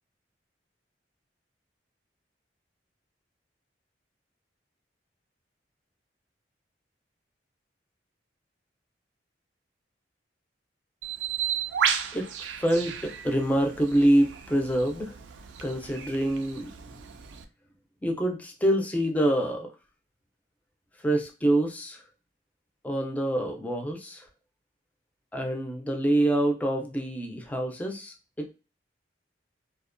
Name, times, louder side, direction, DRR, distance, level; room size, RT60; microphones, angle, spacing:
Bird, 11.0-17.4, right 8 dB, 80° right, 0.3 m, -33 dB
voice 1, 12.6-15.1 15.6-17.1 18.0-19.7 21.0-22.0 22.8-24.2 25.3-28.5, right 1 dB, 10° left, 2 dB, 0.4 m, -26 dB
2.4 x 2.1 x 2.4 m, 0.32 s
head